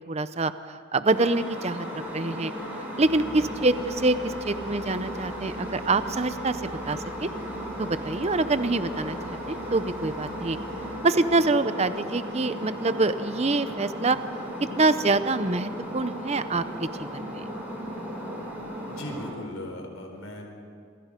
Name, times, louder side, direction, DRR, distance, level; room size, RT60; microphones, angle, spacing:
voice 1, 0.1-2.5 3.0-7.3 7.8-10.6 11.0-14.2 14.8-17.4, right 3 dB, 30° right, 12 dB, 0.7 m, -26 dB
sound 1, 1.1-19.3, equal, 10° right, 5.4 m, -36 dB
sound 2, 3.0-11.0, right 2 dB, 85° right, 5.4 m, -46 dB
voice 2, 19.0-20.5, left 1 dB, 85° left, 3 dB, 4.4 m, -38 dB
28.0 x 23.5 x 5.2 m, 2.3 s
head